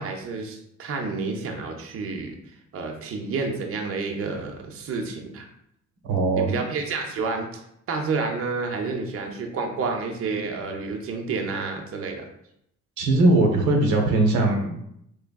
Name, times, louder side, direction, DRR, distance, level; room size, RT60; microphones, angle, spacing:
voice 1, 0.0-2.4 2.7-5.5 6.3-7.6 7.9-12.3, right 4 dB, 50° right, 3 dB, 0.6 m, -29 dB
voice 2, 6.1-6.6 13.0-14.8, right 2 dB, 90° right, 1 dB, 0.8 m, -20 dB
3.5 x 3.1 x 2.3 m, 0.75 s
cardioid pair, 90°, 30 cm